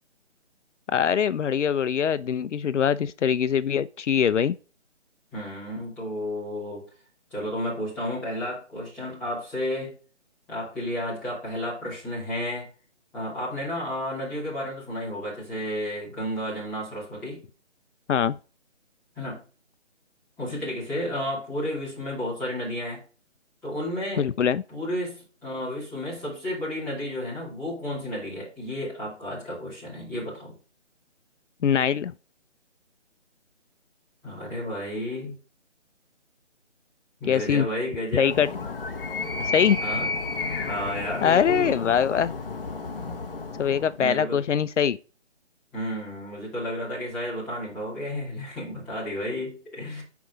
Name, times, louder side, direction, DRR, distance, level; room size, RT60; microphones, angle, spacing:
voice 1, 0.9-4.6 18.1-18.3 24.2-24.6 31.6-32.1 37.3-37.7 38.1-38.5 39.5-39.8 41.2-42.3 43.6-45.0, left 8 dB, 80° left, 0.5 m, -23 dB
voice 2, 5.3-6.9 7.3-10.0 10.5-12.7 13.1-17.4 19.1-19.4 20.4-23.0 23.6-24.3 24.7-30.6 34.2-35.3 37.2-38.4 39.8-40.1 40.6-41.8 44.0-44.4 45.7-50.0, equal, 5° left, 2.8 m, -32 dB
Animal, 38.2-44.0, left 3 dB, 50° left, 1.1 m, -32 dB
5.9 x 4.7 x 5.1 m
hypercardioid pair, 170°, 36 cm